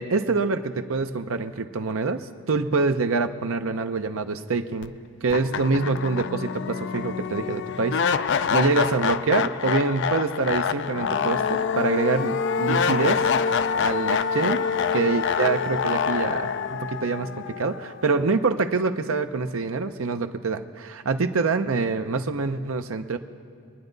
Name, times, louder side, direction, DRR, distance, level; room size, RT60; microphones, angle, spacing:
voice 1, 0.0-4.9 5.2-13.2 13.8-14.6 14.9-16.5 16.8-17.3 17.6-23.2, right 4 dB, 75° right, 8 dB, 0.8 m, -25 dB
sound 1, 4.8-4.9 5.3-18.4, left 6 dB, 55° left, 0.4 m, -26 dB
25.5 x 10.0 x 4.0 m, 2.5 s
head